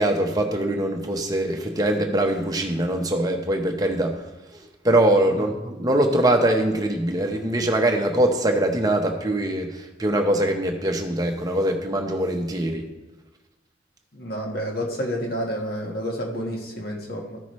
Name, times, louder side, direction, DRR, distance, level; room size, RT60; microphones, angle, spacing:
voice 1, 0.0-4.2 4.5-12.9, right 1 dB, 20° right, 2 dB, 0.9 m, -23 dB
voice 2, 14.1-17.4, equal, 50° left, 0 dB, 1.4 m, -29 dB
13.5 x 5.8 x 3.1 m, 1.1 s
head